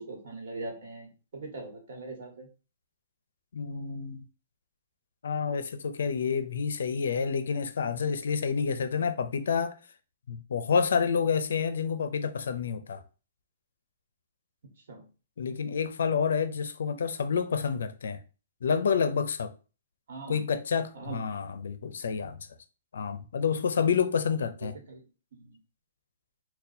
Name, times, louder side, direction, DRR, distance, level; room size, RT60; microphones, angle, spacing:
voice 1, 0.0-2.5 8.6-8.7 14.9-15.0 20.1-20.4 20.9-21.2 24.9-25.0 25.3-25.5, right 3 dB, 60° right, 1.2 m, -41 dB
voice 2, 3.5-4.2 5.2-9.7 10.3-13.0 15.4-18.2 18.6-19.5 20.3-22.5 22.9-24.7, left 6 dB, 80° left, 0.4 m, -29 dB
2.6 x 2.2 x 4.0 m
hypercardioid pair, 170°, 0 cm